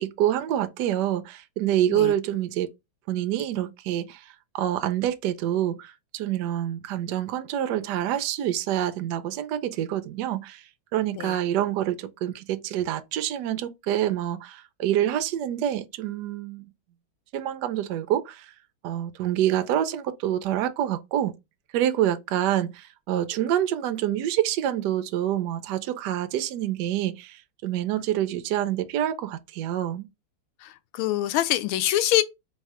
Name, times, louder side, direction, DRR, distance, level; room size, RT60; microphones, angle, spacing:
voice 1, 0.0-2.7 3.1-10.6 10.9-16.7 17.3-18.5 18.8-21.3 21.7-30.1, right 11 dB, 75° right, 1.0 m, -27 dB
voice 2, 30.6-32.2, left 13 dB, 85° left, 1.4 m, -25 dB
3.5 x 3.2 x 4.7 m
omnidirectional pair, 2.3 m